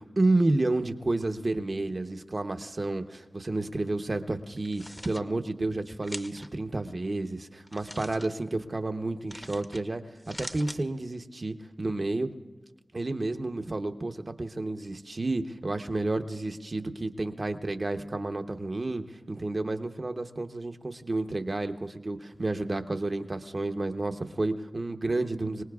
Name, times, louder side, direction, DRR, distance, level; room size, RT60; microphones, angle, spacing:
voice 1, 0.0-10.0 10.4-12.3 12.9-25.6, right 2 dB, 50° right, 6 dB, 0.8 m, -30 dB
sound 1, 4.6-5.2 6.0-6.5 7.7-8.3 9.3-9.8 10.2-10.8, equal, 15° left, 0.8 m, -42 dB
25.5 x 18.5 x 2.4 m, 1.2 s
wide cardioid pair, 50°, 0 cm